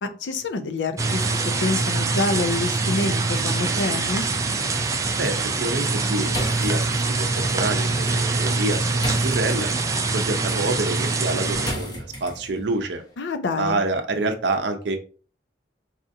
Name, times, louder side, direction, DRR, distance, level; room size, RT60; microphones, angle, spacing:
voice 1, 0.0-1.2 1.6-4.2 13.2-13.8, left 3 dB, 85° left, 9 dB, 0.4 m, -26 dB
sound 1, 1.0-11.7, right 3 dB, 20° right, 0.3 m, -24 dB
voice 2, 5.2-6.8 7.2-9.7 10.1-13.0 13.6-15.0, right 2 dB, 75° right, 6 dB, 0.5 m, -27 dB
sound 2, 6.3-12.8, equal, 20° left, 0.8 m, -36 dB
4.1 x 2.5 x 2.6 m, 0.39 s
head